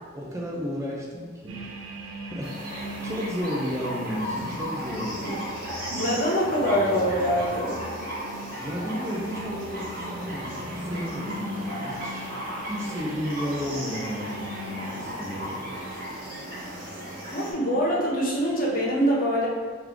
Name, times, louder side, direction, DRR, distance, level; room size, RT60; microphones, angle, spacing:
voice 1, 0.1-1.6 2.3-2.7 3.0-5.4 8.6-12.4 12.7-15.5, equal, 15° right, -3 dB, 0.4 m, -33 dB
sound 1, 1.5-18.9, equal, 85° right, 0.5 m, -40 dB
sound 2, 2.4-17.5, equal, 50° right, 1.4 m, -36 dB
voice 2, 5.9-7.8 17.3-19.5, equal, 45° left, -4 dB, 0.9 m, -24 dB
3.5 x 3.1 x 3.5 m, 1.5 s
head